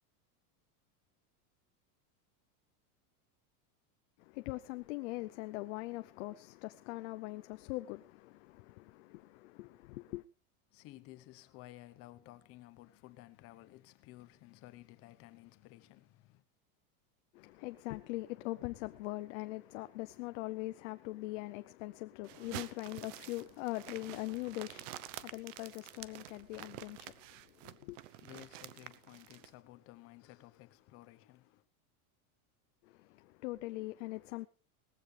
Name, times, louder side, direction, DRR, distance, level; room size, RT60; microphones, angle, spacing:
voice 1, 4.2-10.2 17.3-28.0 32.8-34.5, left 19 dB, 55° left, 0.7 m, -42 dB
voice 2, 10.7-16.4 27.8-31.6, left 16 dB, 30° left, 1.0 m, -55 dB
sound 1, 22.2-29.5, right 15 dB, 55° right, 0.9 m, -49 dB
19.0 x 15.0 x 3.3 m
supercardioid pair, 170°, 44 cm